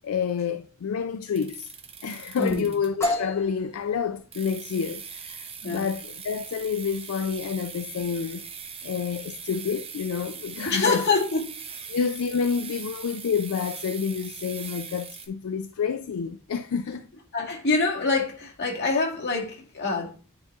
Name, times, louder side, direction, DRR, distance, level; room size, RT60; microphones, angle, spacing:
voice 1, 0.0-1.7 2.0-8.5 8.8-11.0 11.9-17.1, left 6 dB, 75° left, 0.4 m, -29 dB
sound 1, 1.3-3.1 4.3-15.3, right 6 dB, 25° right, 0.8 m, -41 dB
voice 2, 2.4-2.7 5.6-5.9 10.6-11.4 16.9-17.0 17.3-20.2, left 3 dB, 50° left, 2.1 m, -25 dB
sound 2, 3.0-10.6, left 2 dB, 15° left, 1.6 m, -36 dB
9.6 x 4.6 x 2.7 m
head